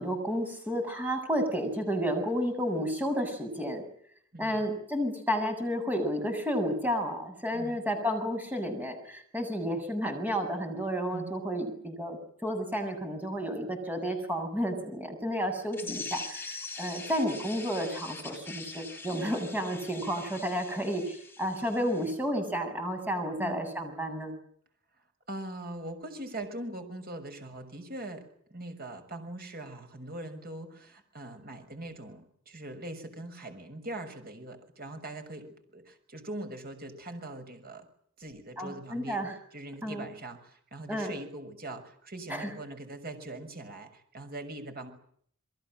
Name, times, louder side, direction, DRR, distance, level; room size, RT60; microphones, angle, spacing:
voice 1, 0.0-3.8 4.4-24.3 38.6-39.3 39.8-40.1 40.9-41.1 42.3-42.5, equal, 10° right, 5 dB, 7.5 m, -31 dB
voice 2, 4.3-4.6 7.5-7.8 11.1-11.3 15.8-16.0 23.4-23.7 25.3-37.9 38.2-44.9, right 1 dB, 45° right, 6 dB, 6.4 m, -42 dB
sound 1, 15.7-22.1, left 4 dB, 10° left, 5.6 m, -43 dB
28.5 x 22.5 x 7.7 m, 0.63 s
head